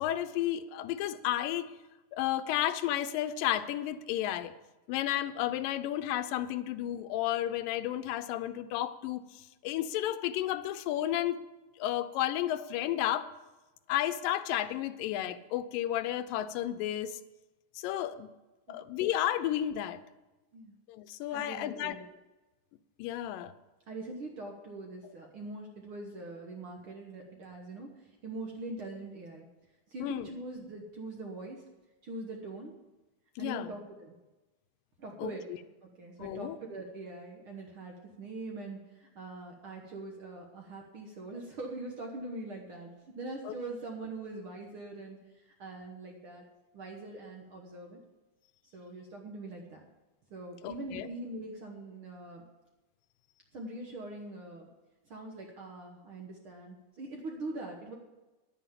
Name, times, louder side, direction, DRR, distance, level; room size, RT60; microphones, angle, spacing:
voice 1, 0.0-1.7 2.1-4.5 4.9-11.4 11.8-13.3 13.9-17.2 17.8-18.3 18.7-20.0 20.9-22.0 23.0-23.5 30.0-30.3 33.4-33.7 35.2-35.3 36.2-36.6 43.4-43.5 50.6-51.1, left 12 dB, 90° left, 12 dB, 2.3 m, -32 dB
voice 2, 21.3-22.0 23.9-29.5 29.9-31.6 32.0-32.7 33.4-34.1 35.0-35.5 35.8-46.4 46.7-48.0 48.7-49.8 50.3-52.4 53.5-54.7 55.0-57.9, right 2 dB, 60° right, 1 dB, 1.5 m, -43 dB
11.0 x 9.1 x 7.4 m, 1.1 s
omnidirectional pair, 3.8 m